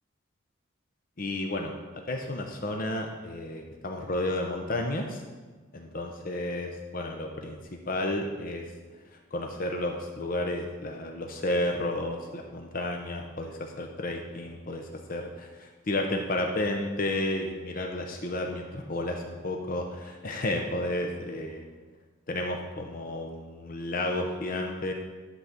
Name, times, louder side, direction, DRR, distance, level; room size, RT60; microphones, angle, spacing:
voice 1, 1.2-1.7 2.1-5.2 5.7-8.7 9.1-21.6 22.3-24.9, left 1 dB, 45° left, 2 dB, 0.7 m, -32 dB
11.5 x 4.0 x 5.9 m, 1.3 s
head